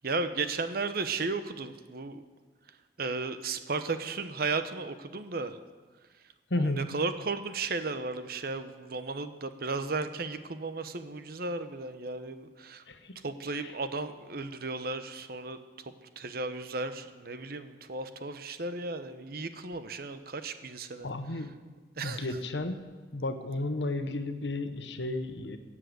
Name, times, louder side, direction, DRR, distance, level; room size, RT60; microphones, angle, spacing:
voice 1, 0.0-2.2 3.0-5.6 6.5-12.8 13.2-21.5 22.0-22.4, right 3 dB, 60° right, 10 dB, 0.9 m, -35 dB
voice 2, 6.5-6.9 12.9-13.1 21.0-21.5 22.0-22.8 23.1-25.6, left 2 dB, 85° left, 8 dB, 1.2 m, -32 dB
16.5 x 7.6 x 8.0 m, 1.4 s
head